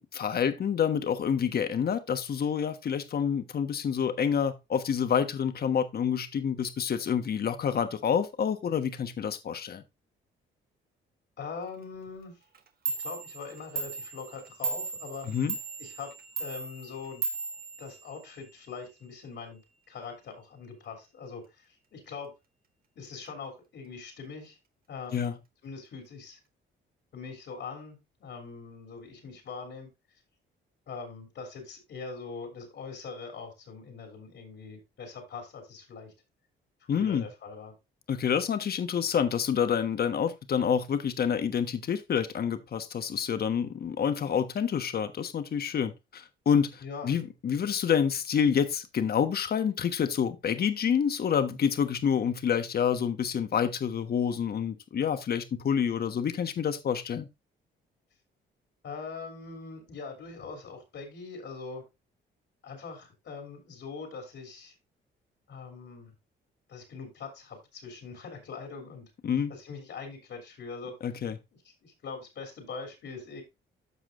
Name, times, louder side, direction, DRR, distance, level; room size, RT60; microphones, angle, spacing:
voice 1, 0.1-9.8 15.3-15.5 25.1-25.3 36.9-37.2 38.1-57.3 69.2-69.5 71.0-71.3, left 7 dB, 50° left, 1.2 m, -28 dB
voice 2, 11.4-12.4 12.9-15.3 15.8-16.1 16.4-17.2 17.8-19.6 19.9-22.3 22.9-24.6 24.9-25.4 25.6-26.4 27.1-29.9 30.9-36.1 36.8-37.7 46.8-47.1 58.8-61.8 62.6-64.7 65.5-66.1 66.7-69.1 69.5-70.9 71.6-73.4, left 5 dB, 65° left, 3.1 m, -42 dB
Clock, 12.5-12.6 12.9-18.5, right 4 dB, 50° right, 1.6 m, -36 dB
14.0 x 4.9 x 2.5 m
cardioid pair, 90°, 20 cm